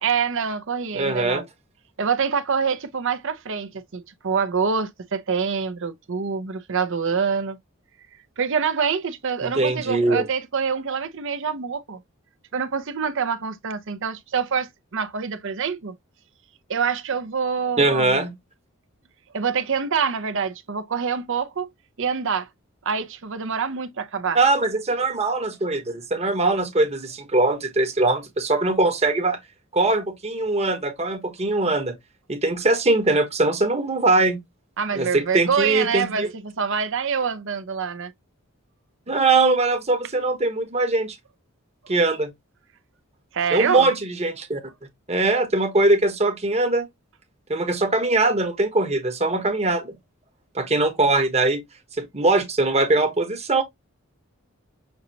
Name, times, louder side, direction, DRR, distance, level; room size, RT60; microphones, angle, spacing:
voice 1, 0.0-1.4 2.0-7.6 8.4-12.0 12.5-15.9 16.7-18.2 19.3-21.7 22.0-22.5 22.8-24.4 34.8-38.1 43.3-43.9, right 6 dB, 65° right, 0.7 m, -26 dB
voice 2, 0.9-1.4 9.4-10.3 17.8-18.3 24.3-29.4 29.7-32.0 32.3-34.4 34.9-36.3 39.1-41.2 41.9-42.3 43.5-44.6 45.1-46.9 47.5-50.0 50.5-51.6 52.0-53.6, right 2 dB, 30° right, 1.2 m, -21 dB
6.5 x 2.8 x 2.8 m
head